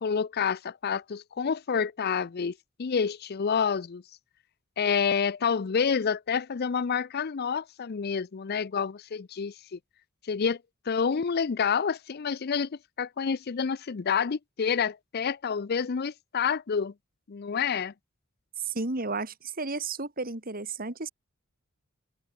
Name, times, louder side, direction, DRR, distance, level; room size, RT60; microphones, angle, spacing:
voice 1, 0.0-4.0 4.8-9.8 10.2-10.6 10.9-16.9 17.3-17.9, left 6 dB, 50° left, 0.5 m, -28 dB
voice 2, 18.6-21.1, right 3 dB, 45° right, 2.7 m, -33 dB
open air
head